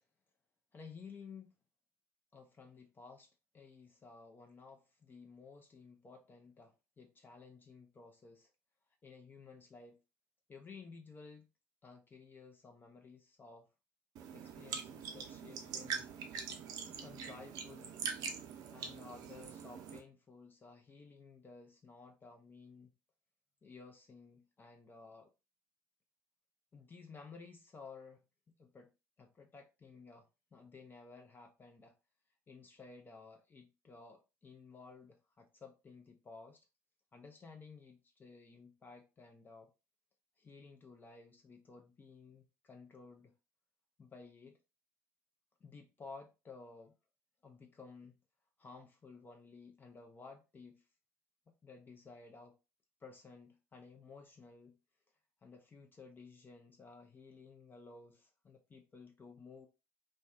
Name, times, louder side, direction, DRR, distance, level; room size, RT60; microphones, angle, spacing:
voice 1, 0.7-1.5 2.3-8.5 9.0-10.0 10.5-11.5 11.8-13.7 14.3-16.1 16.9-17.9 18.7-22.9 23.6-25.3 26.7-28.2 28.6-28.9 29.2-31.9 32.5-36.7 37.1-39.7 40.4-43.3 44.0-44.6 45.6-46.9 47.4-48.1 48.6-50.8 51.6-52.6 53.0-54.8 55.4-59.7, left 4 dB, 30° left, 0.5 m, -55 dB
sound 1, 14.2-20.0, right 6 dB, 60° right, 0.5 m, -43 dB
2.6 x 2.2 x 2.2 m
hypercardioid pair, 60°, 7 cm